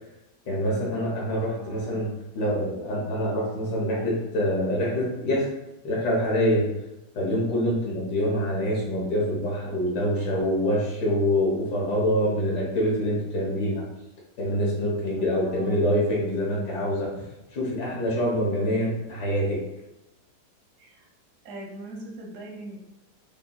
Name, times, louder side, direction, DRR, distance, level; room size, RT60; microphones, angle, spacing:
voice 1, 0.5-2.1 2.3-5.5 5.8-6.6 7.1-13.8 14.4-17.1 17.5-19.6, equal, 75° left, -4 dB, 1.6 m, -25 dB
voice 2, 1.5-2.1 15.2-15.8 20.8-21.1 21.4-22.8, right 1 dB, 65° right, -1 dB, 0.8 m, -41 dB
5.3 x 2.0 x 2.2 m, 0.93 s
omnidirectional pair, 1.8 m